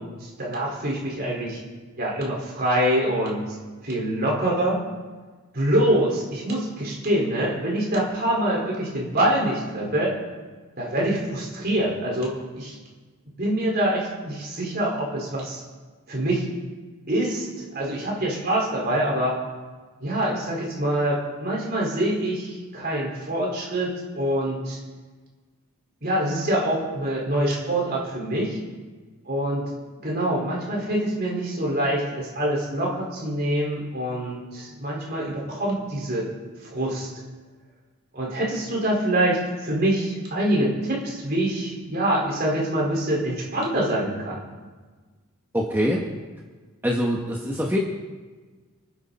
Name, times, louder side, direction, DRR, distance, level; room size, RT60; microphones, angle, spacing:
voice 1, 0.0-1.6 2.0-3.4 3.8-4.8 5.5-10.1 10.8-12.7 13.4-15.6 16.1-16.4 17.1-19.3 20.0-24.8 26.0-28.6 29.2-29.6 30.0-36.3 36.7-37.1 38.1-44.4, right 1 dB, 45° right, -3 dB, 4.9 m, -25 dB
voice 2, 45.5-46.0 46.8-47.8, equal, 10° right, -2 dB, 1.3 m, -24 dB
29.0 x 10.0 x 4.3 m, 1.4 s
head